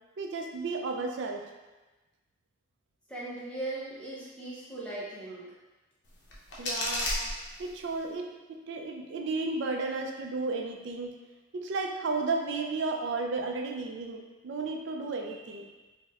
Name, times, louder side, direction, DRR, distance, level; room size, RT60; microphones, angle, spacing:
voice 1, 0.2-1.4 6.6-7.1 7.6-11.2 11.5-15.7, right 3 dB, 55° right, 2 dB, 0.3 m, -33 dB
voice 2, 3.1-5.5 7.0-7.1, right 2 dB, 5° left, -8 dB, 0.6 m, -38 dB
sound 1, 6.0-8.0, left 1 dB, 55° left, 0.6 m, -34 dB
4.0 x 2.1 x 2.4 m, 1.2 s
head